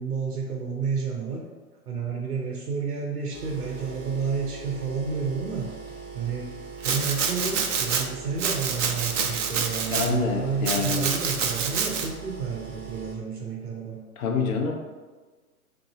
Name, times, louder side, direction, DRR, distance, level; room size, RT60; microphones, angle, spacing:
voice 1, 0.0-1.4 1.9-5.7 6.1-14.0, right 5 dB, 80° right, -1 dB, 0.9 m, -30 dB
sound 1, 3.3-13.1, right 4 dB, 15° right, 0.5 m, -41 dB
Domestic sounds home sounds, 6.8-8.0 8.4-10.1 10.7-12.1, right 6 dB, 55° right, 0.6 m, -27 dB
voice 2, 9.9-11.1 14.2-14.7, left 4 dB, 65° left, 2 dB, 0.7 m, -26 dB
3.7 x 2.6 x 3.9 m, 1.4 s
hypercardioid pair, 125°, 45 cm